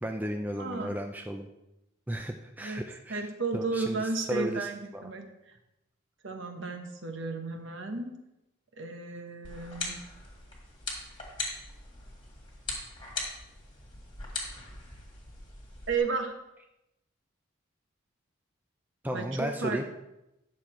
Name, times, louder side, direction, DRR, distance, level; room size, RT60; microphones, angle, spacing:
voice 1, 0.0-1.5 2.1-5.0 19.0-19.8, right 1 dB, 10° right, 4 dB, 0.4 m, -34 dB
voice 2, 0.6-1.0 2.6-2.8 3.1-5.5 6.2-8.1 8.8-10.0 15.9-16.3 19.1-19.8, right 3 dB, 55° right, 5 dB, 1.1 m, -33 dB
sound 1, 9.4-16.0, left 3 dB, 25° left, 1.9 m, -40 dB
9.9 x 6.5 x 4.3 m, 0.91 s
head